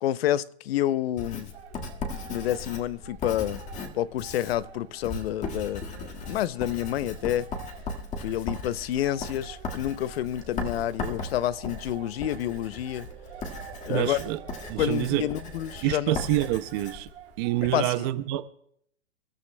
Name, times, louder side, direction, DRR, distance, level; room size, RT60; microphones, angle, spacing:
voice 1, 0.0-1.5 2.3-3.6 3.9-7.5 8.2-13.1 13.9-14.2 14.8-16.2 17.6-17.9, left 12 dB, 60° left, 0.6 m, -29 dB
Writing, 1.2-17.8, left 3 dB, 20° left, 1.7 m, -37 dB
sound 1, 1.5-17.9, right 9 dB, 90° right, 3.3 m, -51 dB
sound 2, 9.0-15.9, right 9 dB, 75° right, 4.9 m, -49 dB
voice 2, 13.9-14.4 14.7-15.2 15.8-17.1 17.4-18.5, right 15 dB, 25° right, 0.4 m, -27 dB
27.0 x 13.0 x 2.2 m
hypercardioid pair, 145°, 34 cm